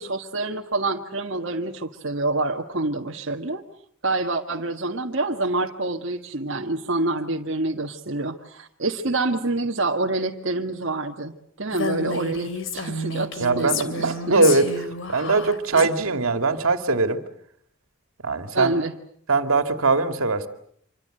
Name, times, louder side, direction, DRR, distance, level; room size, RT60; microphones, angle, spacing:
voice 1, 0.0-3.6 4.0-14.5 15.7-15.9 18.5-18.9, right 2 dB, 60° right, 0 dB, 1.6 m, -27 dB
Female speech woman speaking, 11.7-15.9, left 3 dB, 60° left, 2.8 m, -30 dB
voice 2, 13.4-14.7 15.1-17.2 18.2-18.7 19.3-20.5, right 3 dB, 85° right, 8 dB, 2.3 m, -21 dB
26.5 x 24.5 x 7.8 m, 0.66 s
head